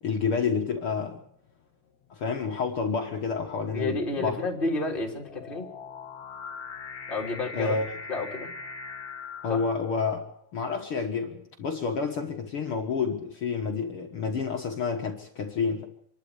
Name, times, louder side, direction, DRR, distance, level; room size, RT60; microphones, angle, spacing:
voice 1, 0.0-1.2 2.1-4.4 7.5-7.8 9.4-10.2 10.5-15.9, left 5 dB, 75° left, 3 dB, 1.2 m, -29 dB
sound 1, 1.2-1.3 2.1-10.3, left 5 dB, 45° left, 3.5 m, -42 dB
voice 2, 3.7-5.7 7.1-7.8 8.1-8.5 9.5-9.6, left 3 dB, 15° left, 0 dB, 2.8 m, -30 dB
26.5 x 12.0 x 8.2 m, 0.72 s
omnidirectional pair, 4.9 m